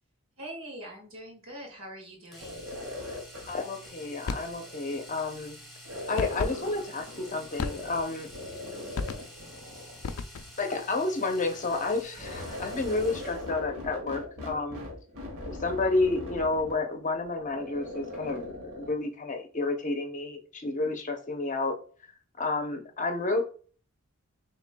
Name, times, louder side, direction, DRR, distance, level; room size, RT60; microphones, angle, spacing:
voice 1, 0.4-2.7, right 1 dB, 70° right, 0 dB, 1.8 m, -43 dB
Domestic sounds home sounds, 2.3-13.6 15.7-15.8 16.1-16.2, equal, ahead, 1.6 m, -49 dB
sound 1, 2.4-5.2 5.8-8.0 8.3-10.1 11.1-18.9, left 2 dB, 85° right, 1.7 m, -41 dB
voice 2, 3.5-5.6 6.1-8.3 10.6-14.9 15.5-21.8 22.4-23.4, left 3 dB, 35° left, 5 dB, 0.7 m, -30 dB
sound 2, 4.2-4.6 6.2-6.6 7.6-8.1 9.0-9.4 10.0-10.6, left 4 dB, 75° left, 0.4 m, -34 dB
6.1 x 3.2 x 2.2 m, 0.41 s
head